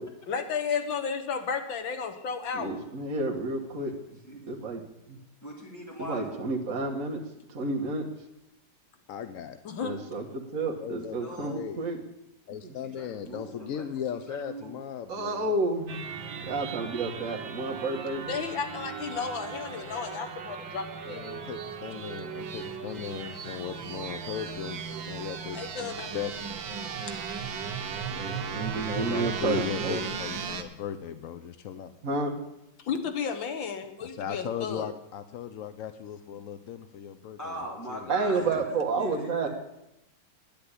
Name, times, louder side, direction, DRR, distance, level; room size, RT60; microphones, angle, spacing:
voice 1, 0.3-2.7 9.7-10.0 18.3-21.2 25.5-26.1 27.1-27.2 32.9-34.9, left 6 dB, 80° left, 7 dB, 2.1 m, -33 dB
voice 2, 2.5-3.9 4.5-4.8 5.1-5.2 6.0-7.2 7.5-8.1 9.8-12.0 12.6-12.8 15.1-15.9 16.5-18.3 28.1-30.0 32.0-32.3 38.1-39.5, right 3 dB, 45° right, 0 dB, 1.8 m, -30 dB
voice 3, 5.4-6.5 11.2-11.6 12.9-13.9 14.3-14.8 37.4-39.5, equal, 10° left, -3 dB, 3.9 m, -40 dB
voice 4, 9.1-9.6 10.8-11.8 12.5-15.5 21.0-26.4 28.8-31.9 34.0-37.6 37.9-38.1 38.5-38.6, left 9 dB, 65° left, 10 dB, 0.8 m, -37 dB
sound 1, 15.9-30.6, right 6 dB, 80° right, 1.9 m, -37 dB
10.5 x 9.5 x 9.8 m, 0.88 s
omnidirectional pair, 2.0 m